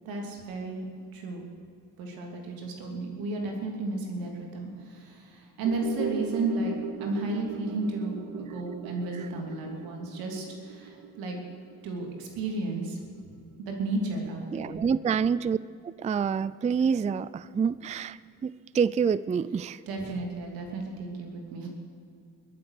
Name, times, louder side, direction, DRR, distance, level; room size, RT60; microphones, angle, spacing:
voice 1, 0.0-0.9 1.1-1.4 2.0-6.7 7.0-11.4 11.8-13.0 13.6-14.8 19.9-21.7, right 2 dB, 85° right, 1 dB, 2.9 m, -33 dB
sound 1, 5.7-14.1 14.4-14.5, right 8 dB, 65° right, 1.0 m, -40 dB
voice 2, 14.5-15.6 15.8-19.8, right 6 dB, 20° right, 18 dB, 0.4 m, -27 dB
22.0 x 7.9 x 6.5 m, 2.4 s
supercardioid pair, 65°, 35 cm